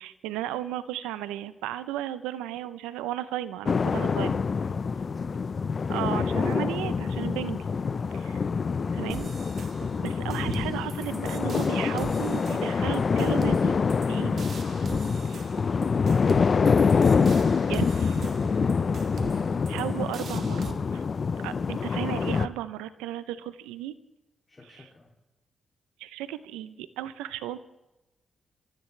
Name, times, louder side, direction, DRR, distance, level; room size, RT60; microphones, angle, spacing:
voice 1, 0.0-4.4 5.9-7.7 8.1-8.4 8.9-9.3 9.9-13.8 14.1-14.5 15.3-15.4 17.7-18.3 19.7-21.0 21.4-24.0 26.0-27.6, right 13 dB, 90° right, 14 dB, 0.7 m, -34 dB
sound 1, 3.7-22.5, left 5 dB, 50° left, 0.7 m, -26 dB
voice 2, 5.0-5.5 20.6-20.8 24.5-25.1, left 2 dB, 30° left, -1 dB, 2.8 m, -50 dB
sound 2, 9.1-20.7, right 5 dB, 65° right, 1.8 m, -43 dB
26.0 x 14.5 x 3.3 m, 1.0 s
supercardioid pair, 45°, 0 cm